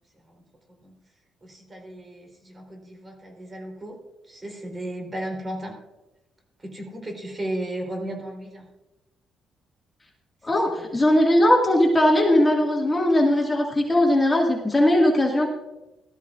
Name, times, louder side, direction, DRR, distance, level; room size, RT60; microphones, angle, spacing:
voice 1, 1.4-4.0 4.3-5.8 6.6-8.7 10.8-10.9, right 1 dB, 25° right, 2 dB, 3.6 m, -35 dB
voice 2, 10.5-15.5, left 1 dB, 20° left, -1 dB, 1.9 m, -19 dB
17.5 x 13.0 x 2.5 m, 1.0 s
cardioid pair, 90°, 0 cm